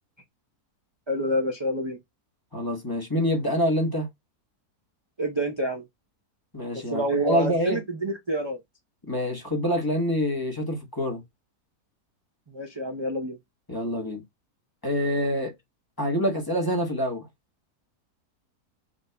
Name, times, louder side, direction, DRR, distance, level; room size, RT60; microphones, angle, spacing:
voice 1, 1.1-2.0 5.2-5.8 6.9-8.6 12.5-13.4, right 1 dB, 30° right, 0.5 m, -27 dB
voice 2, 2.5-4.1 6.5-7.8 9.1-11.2 13.7-14.2 14.8-15.5 16.0-17.3, equal, 15° left, 1.0 m, -26 dB
5.1 x 2.6 x 3.3 m
omnidirectional pair, 1.7 m